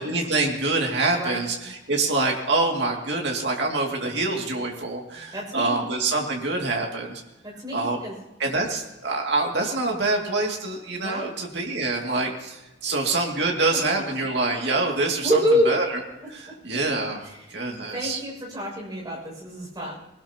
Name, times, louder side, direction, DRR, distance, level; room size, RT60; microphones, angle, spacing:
voice 1, 0.0-7.2 7.7-8.0 8.4-15.4 15.7-15.9 16.3-17.2 17.5-18.2, right 3 dB, 55° right, 0 dB, 2.4 m, -25 dB
voice 2, 5.3-5.8 7.4-8.1 11.0-11.3 12.8-13.0 15.2-15.7 16.7-16.8 17.2-17.6 17.9-19.9, equal, 20° right, -2 dB, 6.4 m, -27 dB
21.5 x 18.5 x 2.9 m, 0.97 s
head